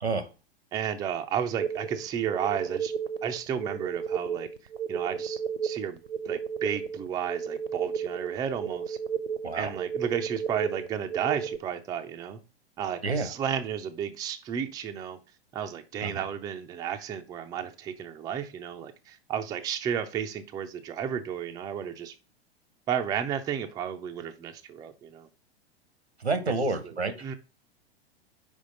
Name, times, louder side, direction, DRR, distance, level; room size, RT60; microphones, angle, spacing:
voice 1, 0.7-2.9 3.2-4.5 4.9-6.0 6.3-9.0 9.6-12.4 12.8-15.2 15.5-22.1 22.9-25.3 26.5-26.6 26.8-26.9 27.2-27.3, right 8 dB, 10° right, 6 dB, 0.4 m, -33 dB
sound 1, 1.6-11.6, right 7 dB, 60° right, 0.7 m, -33 dB
voice 2, 26.2-27.1, right 3 dB, 85° right, 11 dB, 1.0 m, -28 dB
5.3 x 4.8 x 3.8 m, 0.32 s
figure-of-eight pair, 100°, 31 cm